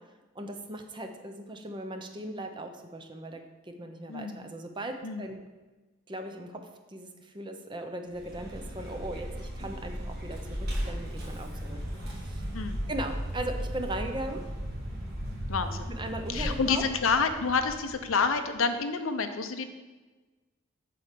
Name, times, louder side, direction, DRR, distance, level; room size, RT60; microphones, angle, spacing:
voice 1, 0.3-3.4 3.8-5.4 6.1-6.6 6.9-10.4 10.9-12.5 12.9-14.4 15.9-16.8, right 1 dB, 25° right, 5 dB, 0.6 m, -38 dB
voice 2, 4.1-4.5 5.0-5.3 12.5-12.9 15.5-15.9 16.3-19.7, left 5 dB, 80° left, 8 dB, 0.7 m, -29 dB
Vehicle, 8.1-18.4, equal, 50° right, 2.4 m, -36 dB
7.6 x 4.4 x 6.7 m, 1.2 s
head